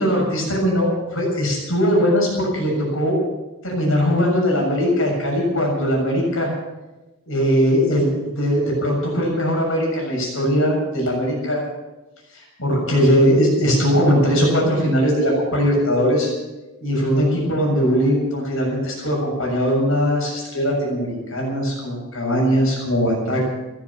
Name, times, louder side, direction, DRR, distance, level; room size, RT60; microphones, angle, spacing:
voice 1, 0.0-3.2 3.6-6.5 7.3-8.1 8.4-11.6 12.3-16.3 16.8-23.4, equal, 65° left, -1 dB, 7.0 m, -20 dB
15.5 x 13.5 x 7.0 m, 1.1 s
head